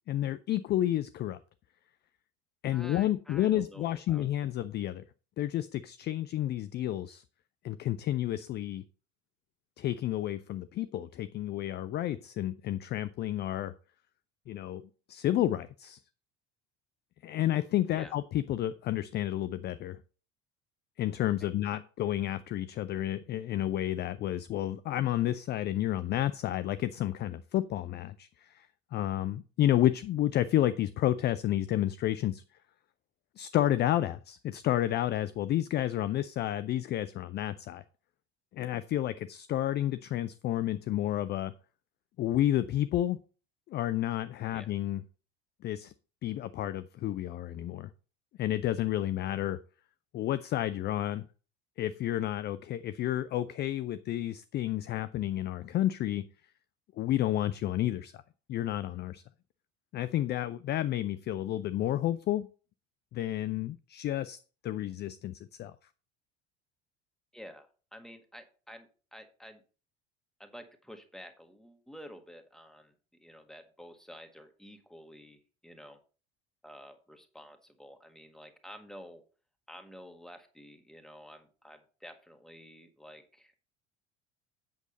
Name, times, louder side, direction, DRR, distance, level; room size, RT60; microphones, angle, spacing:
voice 1, 0.1-1.4 2.6-5.0 5.4-7.2 7.6-8.8 9.8-13.7 14.5-14.8 15.1-16.0 17.2-20.0 21.0-28.7 28.9-32.4 33.4-37.8 38.5-41.5 42.2-43.2 43.7-45.0 45.6-45.9 46.2-47.9 48.4-49.6 50.1-51.2 51.8-56.2 57.0-58.1 58.5-59.2 59.9-62.5 63.1-64.4 64.6-65.7, left 13 dB, 30° left, 14 dB, 0.5 m, -30 dB
voice 2, 2.7-4.3 17.9-18.1 21.4-21.8 44.5-44.7 67.3-69.6 70.4-72.9 73.2-76.0 76.6-79.2 79.7-83.7, equal, ahead, 6 dB, 1.6 m, -50 dB
8.1 x 7.0 x 4.0 m, 0.37 s
figure-of-eight pair, 65°, 34 cm